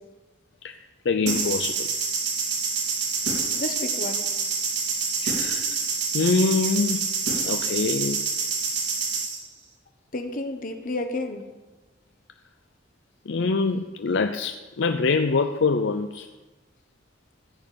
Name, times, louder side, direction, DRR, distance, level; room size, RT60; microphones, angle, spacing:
voice 1, 1.0-1.9 5.2-5.8 6.1-7.1 7.5-8.3 13.3-16.3, left 4 dB, 65° left, 8 dB, 0.5 m, -24 dB
sound 1, 1.3-9.4, right 5 dB, 65° right, 2.7 m, -27 dB
voice 2, 3.5-4.2 10.1-11.4, left 2 dB, 45° left, 6 dB, 1.3 m, -31 dB
14.5 x 5.3 x 8.5 m, 1.2 s
head